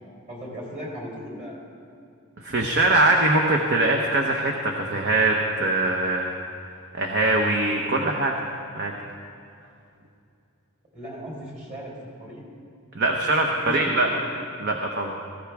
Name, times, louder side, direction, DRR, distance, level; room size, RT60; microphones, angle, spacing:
voice 1, 0.3-1.6 10.9-12.4 13.2-13.3 13.6-14.2, equal, 35° right, -4 dB, 4.0 m, -37 dB
voice 2, 2.4-6.3 6.9-8.3 8.8-8.9 12.9-14.1 14.6-15.1, right 2 dB, 50° right, 1 dB, 1.0 m, -22 dB
18.5 x 15.5 x 3.5 m, 2.6 s
head